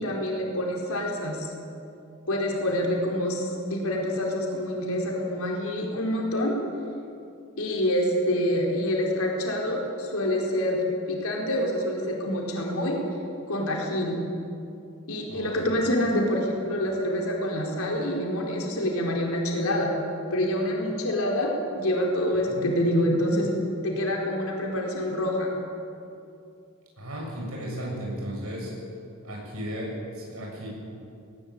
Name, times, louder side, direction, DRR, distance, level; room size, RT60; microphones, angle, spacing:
voice 1, 0.0-1.5 2.3-6.5 7.6-10.8 11.1-13.0 13.5-14.2 15.1-19.9 20.3-23.5 23.8-25.5, left 1 dB, 85° left, -1 dB, 4.6 m, -26 dB
voice 2, 15.3-15.8 22.5-23.1 27.0-28.7 29.2-30.7, equal, 90° right, -2 dB, 7.6 m, -35 dB
19.5 x 19.5 x 8.8 m, 2.6 s
head